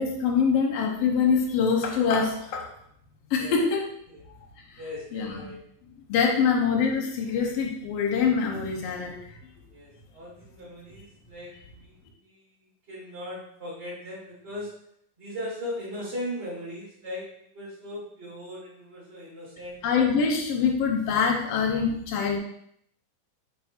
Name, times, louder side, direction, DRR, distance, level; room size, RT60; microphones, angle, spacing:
voice 1, 0.0-2.7 3.3-3.8 4.7-4.8 5.1-5.4 6.1-9.2 19.8-22.4, left 6 dB, 75° left, 1 dB, 1.5 m, -24 dB
voice 2, 3.3-3.7 4.1-4.2 4.8-5.6 6.4-6.5 9.7-11.9 12.2-12.4 12.9-14.7 15.2-19.8, left 1 dB, 30° right, -7 dB, 1.1 m, -38 dB
4.7 x 4.7 x 4.3 m, 0.70 s
omnidirectional pair, 3.9 m